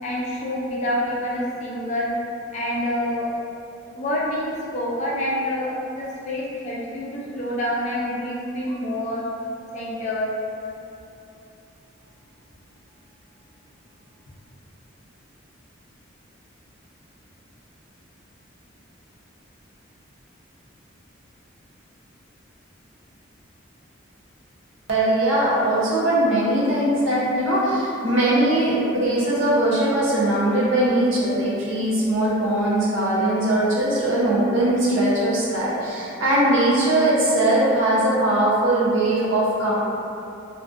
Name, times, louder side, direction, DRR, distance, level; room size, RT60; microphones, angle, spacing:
voice 1, 0.0-2.1 2.5-3.3 3.9-9.2 9.7-10.3, left 1 dB, 35° left, -5 dB, 0.3 m, -27 dB
voice 2, 24.9-39.7, right 1 dB, 75° right, -7 dB, 0.7 m, -20 dB
2.5 x 2.3 x 2.4 m, 2.7 s
head